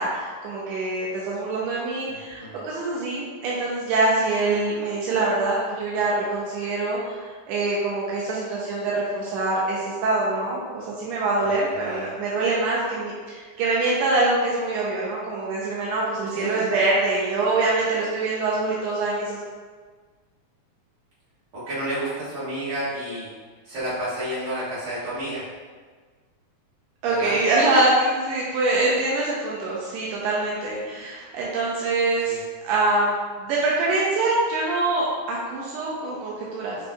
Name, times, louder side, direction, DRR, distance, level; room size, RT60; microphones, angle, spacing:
voice 1, 0.0-19.4 27.0-36.8, right 2 dB, 80° right, -5 dB, 1.7 m, -24 dB
voice 2, 2.1-2.6 11.4-11.5 11.8-12.1 16.3-16.7 21.5-23.3 23.7-25.4 27.1-27.4 32.2-32.4, right 1 dB, 60° right, -11 dB, 2.8 m, -31 dB
7.1 x 2.6 x 2.2 m, 1.5 s
omnidirectional pair, 3.4 m